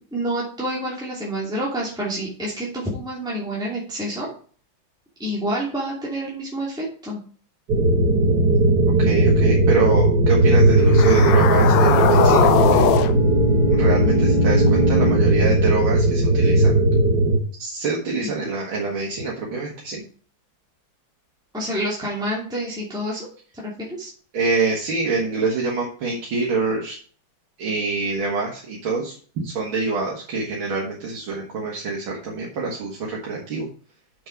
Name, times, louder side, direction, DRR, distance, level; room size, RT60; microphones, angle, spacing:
voice 1, 0.1-4.3 5.2-7.2 18.2-18.5 21.5-23.3 23.5-24.1, right 1 dB, ahead, -6 dB, 2.6 m, -28 dB
sound 1, 7.7-17.4, right 2 dB, 55° right, 1.9 m, -17 dB
voice 2, 9.0-12.9 13.7-16.7 17.6-20.0 24.3-27.0 27.6-29.1 29.4-33.7, right 4 dB, 90° right, -3 dB, 2.6 m, -26 dB
sound 2, 10.8-15.2, left 8 dB, 75° left, 1.4 m, -22 dB
7.4 x 6.5 x 4.6 m, 0.43 s
omnidirectional pair, 2.2 m